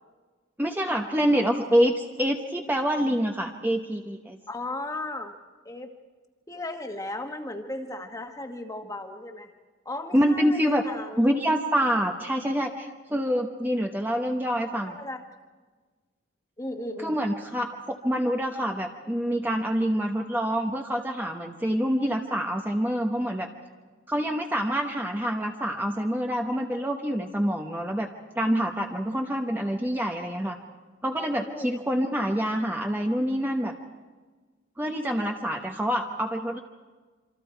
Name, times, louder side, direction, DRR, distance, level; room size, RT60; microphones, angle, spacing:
voice 1, 0.6-4.4 10.1-10.8 11.2-15.0 17.0-23.5 24.1-28.1 28.3-30.6 31.0-33.7 34.8-36.6, equal, 10° right, 2 dB, 1.0 m, -26 dB
voice 2, 4.5-5.3 5.7-5.9 6.5-9.5 9.9-11.4 14.8-15.2 16.6-17.2 31.5-31.7, left 2 dB, 15° left, 4 dB, 1.6 m, -36 dB
27.0 x 25.5 x 4.6 m, 1.4 s
head